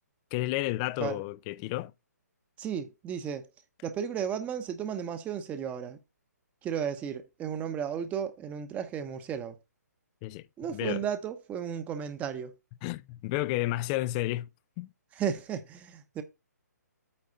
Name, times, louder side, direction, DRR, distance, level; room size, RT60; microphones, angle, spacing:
voice 1, 0.3-1.9 10.2-10.5 10.7-11.0 12.8-14.5 14.8-14.9, left 17 dB, 20° left, 0.3 m, -31 dB
voice 2, 2.6-3.5 3.8-6.0 6.6-9.6 10.6-12.5 15.1-16.2, right 8 dB, 15° right, 0.9 m, -34 dB
8.7 x 3.5 x 6.5 m
figure-of-eight pair, 135°, 9 cm